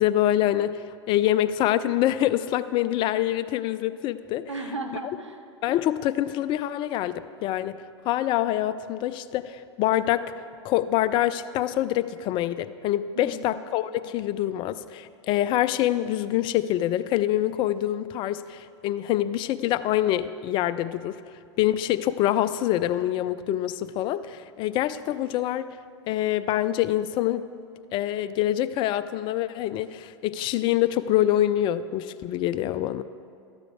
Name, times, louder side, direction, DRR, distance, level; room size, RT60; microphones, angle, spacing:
voice 1, 0.0-4.5 5.6-7.8 8.1-10.3 10.6-21.2 21.6-25.7 26.1-27.4 27.9-33.0, left 13 dB, 35° left, 14 dB, 0.4 m, -25 dB
voice 2, 4.5-5.4 13.1-13.6, right 2 dB, 85° right, 5 dB, 1.0 m, -35 dB
13.0 x 9.0 x 4.7 m, 2.3 s
figure-of-eight pair, 95°, 15 cm